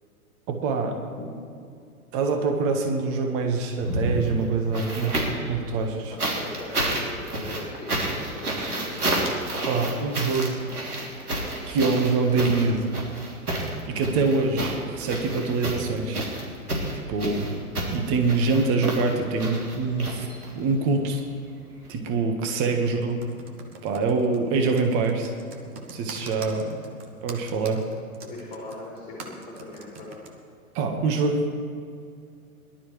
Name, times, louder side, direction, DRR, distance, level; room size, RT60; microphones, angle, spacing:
voice 1, 0.5-1.0 2.1-5.2 5.5-6.1 9.6-10.6 11.7-12.8 13.9-16.2 17.1-17.5 17.9-20.3 20.5-21.2 21.9-23.2 23.8-25.3 25.9-26.8 27.2-27.8 30.7-31.5, right 4 dB, 30° right, 4 dB, 1.6 m, -25 dB
sound 1, 3.7-5.5 6.2-20.7 21.8-21.9, right 1 dB, 80° right, 3.2 m, -30 dB
voice 2, 6.1-8.9 26.3-26.5 28.2-30.1, left 2 dB, 15° left, -5 dB, 3.8 m, -40 dB
Computer keyboard, 23.0-30.3, right 4 dB, 10° right, 0.3 m, -43 dB
22.0 x 11.5 x 3.3 m, 2.4 s
figure-of-eight pair, 110°, 44 cm